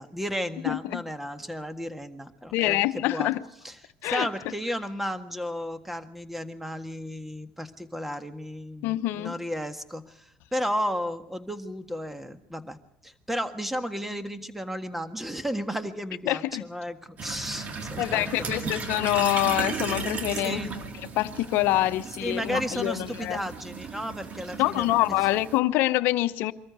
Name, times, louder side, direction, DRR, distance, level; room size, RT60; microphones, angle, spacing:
voice 1, 0.0-3.4 3.6-3.7 4.0-12.8 13.0-18.7 20.3-20.7 22.2-25.1, equal, 5° right, 1.6 m, -33 dB
voice 2, 0.6-1.0 2.5-3.4 4.0-4.3 8.8-9.4 16.3-16.6 18.0-20.6 21.2-23.4 24.6-26.5, left 16 dB, 70° left, 0.9 m, -25 dB
sound 1, 17.2-25.6, right 5 dB, 40° right, 2.0 m, -35 dB
24.0 x 14.0 x 8.1 m
supercardioid pair, 95°, 4 cm